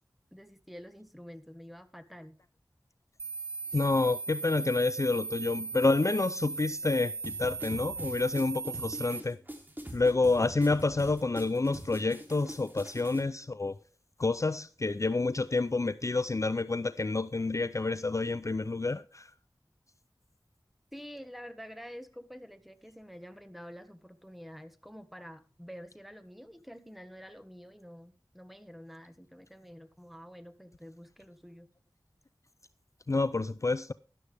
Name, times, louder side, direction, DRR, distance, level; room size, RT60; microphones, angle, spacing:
voice 1, 0.3-2.4 20.9-31.7, equal, ahead, 1.5 m, -48 dB
sound 1, 3.2-9.2, right 4 dB, 80° right, 0.7 m, -38 dB
voice 2, 3.7-9.4 9.9-13.8 14.2-19.3 33.1-33.9, left 3 dB, 40° left, 0.5 m, -28 dB
sound 2, 7.2-13.2, right 1 dB, 25° right, 3.4 m, -43 dB
13.0 x 11.0 x 3.4 m
wide cardioid pair, 55°, 8 cm